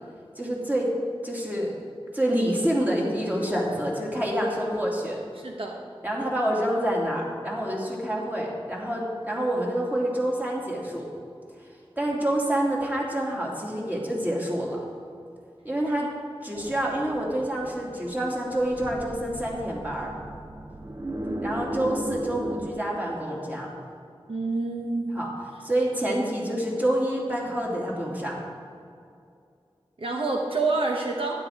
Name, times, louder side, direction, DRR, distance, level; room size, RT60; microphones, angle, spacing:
voice 1, 0.4-0.9 1.2-1.7 2.1-5.2 6.0-11.1 12.0-14.8 15.6-16.1 16.4-20.1 21.4-23.7 25.1-25.3 25.6-28.4, right 1 dB, 15° right, -3 dB, 2.6 m, -27 dB
voice 2, 5.3-5.8 24.3-25.2 30.0-31.3, right 3 dB, 65° right, 0 dB, 1.1 m, -27 dB
sound 1, 16.5-22.7, right 1 dB, 35° right, 0.7 m, -36 dB
12.0 x 10.0 x 3.6 m, 2.4 s
wide cardioid pair, 50°, 10 cm